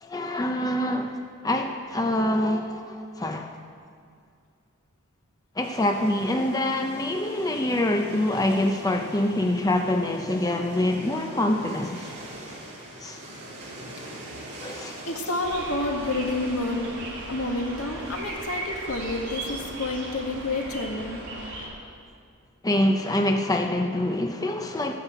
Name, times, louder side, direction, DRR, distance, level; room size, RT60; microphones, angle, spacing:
voice 1, 0.0-3.5 5.6-12.1 13.0-13.2 14.6-15.0 22.6-24.9, left 1 dB, 15° left, 4 dB, 0.6 m, -25 dB
sound 1, 5.6-21.0, right 1 dB, 35° right, 3.6 m, -45 dB
voice 2, 15.0-16.9 17.3-21.2, left 2 dB, 75° left, 1 dB, 1.9 m, -29 dB
sound 2, 15.4-21.7, right 2 dB, 60° right, 3.4 m, -37 dB
13.5 x 9.7 x 8.1 m, 2.2 s
head